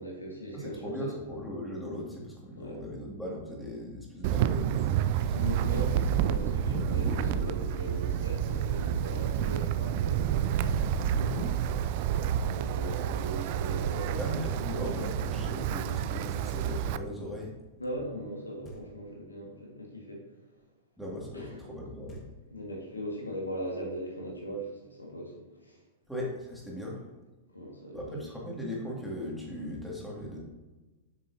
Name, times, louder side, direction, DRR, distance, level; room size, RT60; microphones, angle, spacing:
voice 1, 0.0-0.9 2.5-2.8 5.3-11.5 12.1-14.8 17.8-20.2 21.3-21.6 22.5-25.8 27.5-28.2, equal, 90° left, -1 dB, 1.7 m, -40 dB
voice 2, 0.5-5.4 5.6-5.8 14.2-17.5 21.0-22.2 26.1-27.1 27.9-30.4, equal, ahead, -4 dB, 2.2 m, -38 dB
Wind, 4.2-17.0, right 10 dB, 50° right, 0.3 m, -29 dB
sound 1, 5.8-7.7 8.1-8.2 8.4-9.0 9.4-11.5, right 2 dB, 30° right, 2.5 m, -35 dB
Knock, 18.6-19.4 21.7-21.8 22.1-22.9, right 1 dB, 25° left, 1.6 m, -52 dB
8.3 x 6.4 x 2.8 m, 1.2 s
figure-of-eight pair, 100°, 0 cm